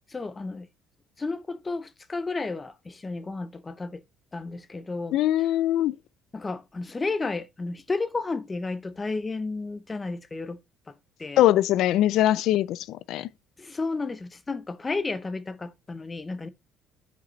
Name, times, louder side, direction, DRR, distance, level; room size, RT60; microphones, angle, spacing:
voice 1, 0.1-0.7 1.2-4.0 4.3-5.5 6.3-10.6 10.9-11.0 11.2-11.4 13.6-16.5, left 3 dB, 15° left, 0.6 m, -32 dB
voice 2, 5.1-6.0 11.4-13.3, left 13 dB, 60° left, 0.3 m, -22 dB
10.0 x 5.1 x 3.1 m
cardioid pair, 165°, 0 cm